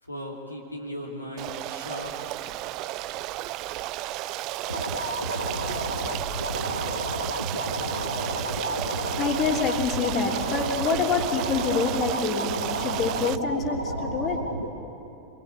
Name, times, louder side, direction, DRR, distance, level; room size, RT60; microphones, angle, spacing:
voice 1, 0.0-2.3, left 1 dB, 85° left, -2 dB, 2.7 m, -37 dB
Stream, 1.4-13.4, right 16 dB, 40° right, 0.5 m, -33 dB
sound 1, 4.7-14.7, right 1 dB, 90° right, 1.8 m, -31 dB
voice 2, 8.7-14.4, left 5 dB, 30° left, 2 dB, 3.2 m, -27 dB
27.0 x 21.5 x 8.3 m, 2.8 s
figure-of-eight pair, 90°, 0 cm